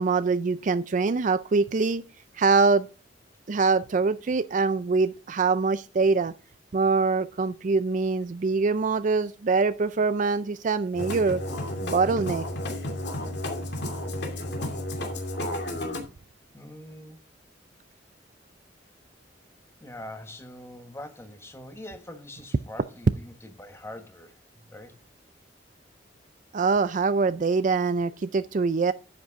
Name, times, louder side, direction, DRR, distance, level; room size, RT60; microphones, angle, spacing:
voice 1, 0.0-2.0 2.4-2.9 3.5-6.3 6.7-11.4 11.8-12.5 26.5-28.9, right 4 dB, 45° right, 0.4 m, -24 dB
Musical instrument, 10.9-16.0, left 1 dB, 65° left, 2.6 m, -32 dB
voice 2, 16.5-17.2 19.8-25.0, left 1 dB, 15° left, 1.3 m, -43 dB
10.5 x 8.0 x 3.6 m
head